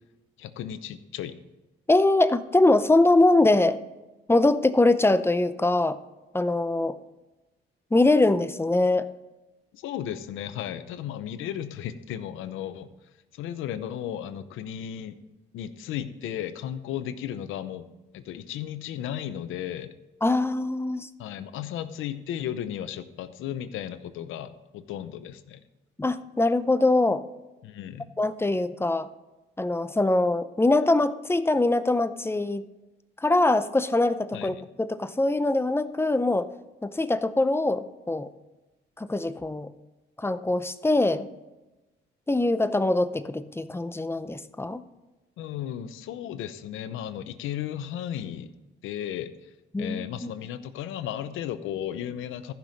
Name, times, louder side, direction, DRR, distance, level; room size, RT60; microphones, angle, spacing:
voice 1, 0.4-1.4 9.7-12.9 13.3-15.1 15.5-17.9 18.1-19.9 21.2-25.6 27.6-28.1 34.3-34.6 45.4-48.5 48.8-49.3 49.8-52.5, left 10 dB, 90° left, 11 dB, 0.8 m, -35 dB
voice 2, 1.9-3.8 4.3-6.0 6.3-6.9 7.9-9.1 20.2-21.1 26.0-27.2 28.2-29.1 29.6-32.6 33.2-36.5 36.8-38.3 39.0-39.7 40.2-41.3 42.3-44.8 49.7-50.3, left 2 dB, 10° left, 12 dB, 0.6 m, -23 dB
14.0 x 6.0 x 5.2 m, 1.1 s
cardioid pair, 90°, 20 cm